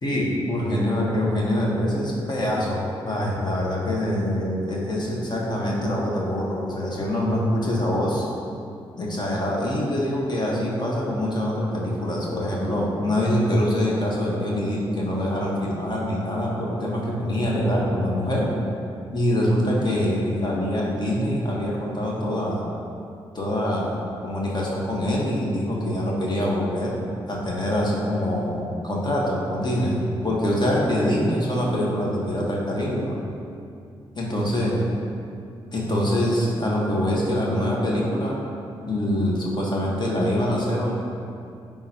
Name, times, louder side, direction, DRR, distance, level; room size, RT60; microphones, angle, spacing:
voice 1, 0.0-8.2 9.0-18.5 19.1-22.6 23.3-26.9 27.3-33.1 34.1-34.8 35.7-38.4 38.8-40.9, equal, 40° left, -3 dB, 1.5 m, -24 dB
9.1 x 3.8 x 3.0 m, 2.5 s
hypercardioid pair, 40°, 11 cm